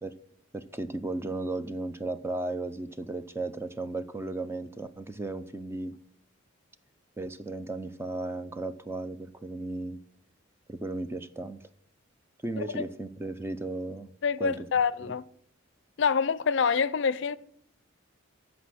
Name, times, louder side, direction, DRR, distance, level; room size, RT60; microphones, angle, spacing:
voice 1, 0.5-6.0 7.2-10.0 10.7-11.6 12.4-14.1 14.4-14.7, right 2 dB, 10° right, 0.5 m, -35 dB
voice 2, 14.2-15.2 16.0-17.4, left 6 dB, 60° left, 0.5 m, -26 dB
14.5 x 5.2 x 5.9 m
head